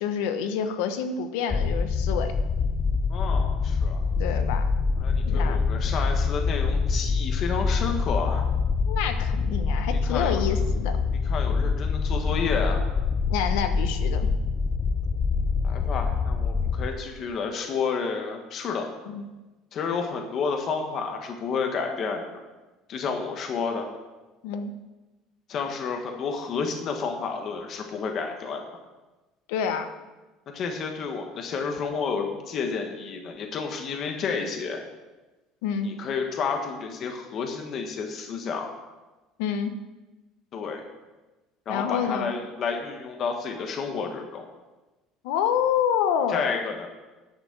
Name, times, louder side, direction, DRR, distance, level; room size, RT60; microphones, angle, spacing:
voice 1, 0.0-2.3 4.2-4.7 5.2-5.6 8.9-11.0 13.3-14.3 19.1-19.3 24.4-24.7 29.5-29.9 35.6-35.9 39.4-39.7 41.7-42.3 45.2-46.6, left 8 dB, 85° left, 8 dB, 1.1 m, -27 dB
sound 1, 1.5-16.9, left 5 dB, 20° left, 0.5 m, -25 dB
voice 2, 3.1-4.1 5.0-8.5 10.0-10.4 11.2-12.8 15.6-18.9 19.7-22.2 22.9-23.9 25.5-28.6 30.5-34.8 35.8-38.7 40.5-40.8 41.7-44.5 46.3-46.9, left 5 dB, 35° left, 3 dB, 1.2 m, -30 dB
10.5 x 6.1 x 8.0 m, 1.1 s
cardioid pair, 165°, 0 cm